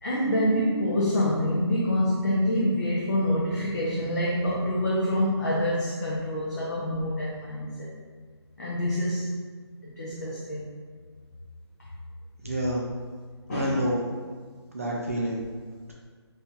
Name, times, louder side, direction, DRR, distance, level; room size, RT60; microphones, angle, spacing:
voice 1, 0.0-7.9 8.6-9.3 9.8-10.6 13.5-13.9, left 1 dB, 40° left, -5 dB, 0.6 m, -26 dB
voice 2, 12.4-12.8 13.5-14.0 14.7-15.4, equal, 30° right, -3 dB, 0.4 m, -28 dB
5.4 x 2.7 x 2.3 m, 1.5 s
hypercardioid pair, 175°, 15 cm